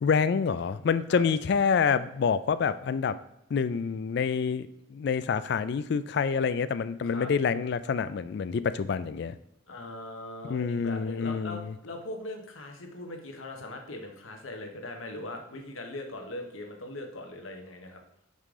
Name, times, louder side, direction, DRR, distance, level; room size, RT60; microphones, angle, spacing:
voice 1, 0.0-3.1 3.5-9.4 10.4-11.6, left 6 dB, 55° left, 14 dB, 0.3 m, -27 dB
voice 2, 9.7-18.0, left 1 dB, 80° left, 3 dB, 1.1 m, -40 dB
5.5 x 4.9 x 3.7 m, 0.84 s
head